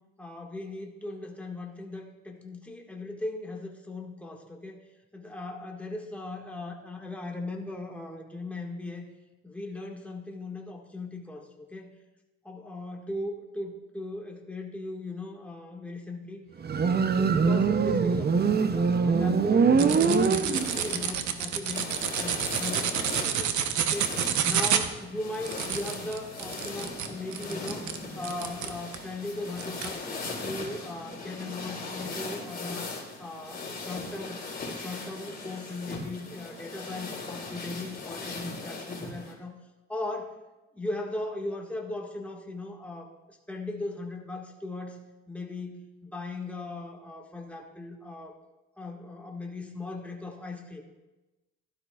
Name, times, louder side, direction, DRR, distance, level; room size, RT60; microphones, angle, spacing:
voice 1, 0.2-4.8 5.1-9.1 9.4-11.9 12.4-16.4 16.9-30.1 30.4-32.9 33.2-39.6 39.9-40.3 40.7-48.4 48.8-50.8, left 2 dB, 5° left, -1 dB, 1.7 m, -38 dB
Motorcycle, 16.6-21.0, right 5 dB, 35° right, 0.6 m, -23 dB
sound 1, 19.8-29.1 29.6-29.9, right 8 dB, 75° right, 0.9 m, -29 dB
sound 2, 20.5-39.3, left 3 dB, 30° left, 3.7 m, -39 dB
16.0 x 12.5 x 2.4 m, 1.1 s
cardioid pair, 90°, 30 cm